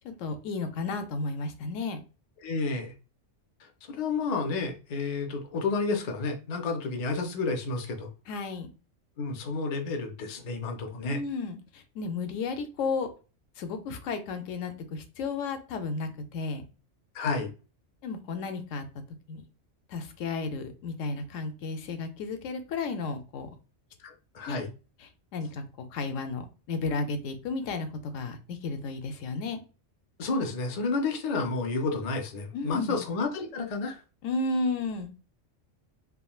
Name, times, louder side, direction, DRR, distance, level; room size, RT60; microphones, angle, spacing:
voice 1, 0.0-2.0 8.3-8.7 11.0-13.1 13.6-16.6 18.0-18.8 19.3-19.4 19.9-23.5 24.5-24.6 25.0-29.6 32.5-33.0 34.2-35.1, left 3 dB, 85° left, 0.9 m, -33 dB
voice 2, 2.4-2.9 3.9-8.1 9.2-11.2 17.1-17.5 24.0-24.7 30.2-34.0, left 3 dB, 55° left, 0.4 m, -30 dB
3.6 x 2.1 x 2.3 m
omnidirectional pair, 1.3 m